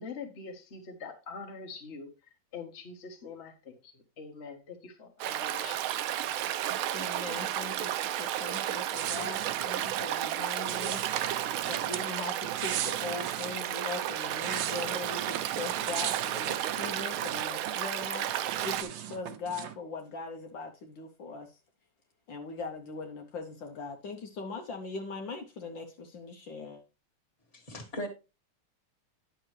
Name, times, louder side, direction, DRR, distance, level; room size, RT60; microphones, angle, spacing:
voice 1, 0.0-5.9, left 4 dB, 35° left, 1.5 m, -44 dB
Stream, 5.2-18.8, right 12 dB, 85° right, 1.5 m, -33 dB
voice 2, 6.9-11.1 11.7-18.3 18.6-21.6 22.3-26.8, left 4 dB, 65° left, 1.6 m, -40 dB
sound 1, 8.9-10.1 10.7-12.1 12.4-13.6 14.1-17.7 18.0-19.8, right 10 dB, 70° right, 1.4 m, -38 dB
voice 3, 27.5-28.1, equal, 20° left, 1.8 m, -38 dB
10.0 x 6.6 x 3.2 m
omnidirectional pair, 2.3 m